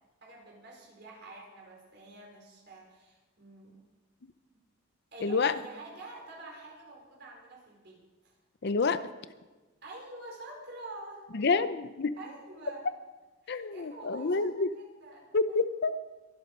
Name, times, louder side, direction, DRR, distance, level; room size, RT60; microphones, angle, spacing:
voice 1, 0.2-3.8 5.1-8.3 9.8-11.2 11.6-11.7 12.1-12.9 13.4-15.3, right 2 dB, 50° right, -1 dB, 4.9 m, -47 dB
voice 2, 5.2-5.5 8.6-9.0 11.3-12.1 13.5-14.7 15.3-16.0, left 4 dB, 50° left, 13 dB, 0.6 m, -28 dB
23.0 x 8.2 x 5.4 m, 1.2 s
head